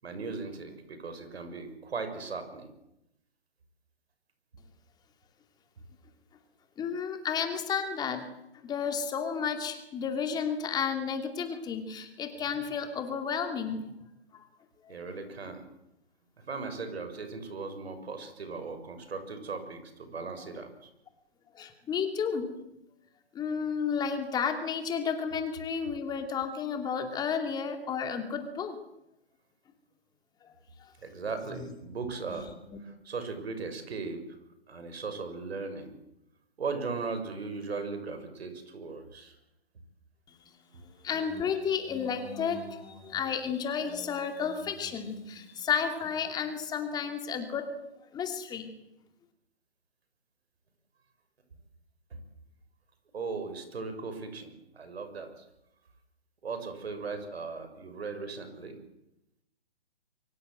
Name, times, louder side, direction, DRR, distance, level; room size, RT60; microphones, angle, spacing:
voice 1, 0.0-2.7 14.9-15.6 16.4-20.9 31.0-32.5 32.8-34.2 34.7-35.9 36.6-39.4 52.1-52.2 53.1-55.4 56.4-58.8, right 4 dB, 75° right, 8 dB, 6.7 m, -38 dB
voice 2, 6.8-8.3 8.6-13.9 14.8-14.9 21.5-22.5 23.3-28.8 30.8-30.9 40.8-47.7 48.1-48.7, left 6 dB, 10° left, 6 dB, 2.7 m, -32 dB
25.5 x 24.0 x 8.0 m, 0.85 s
hypercardioid pair, 150°, 32 cm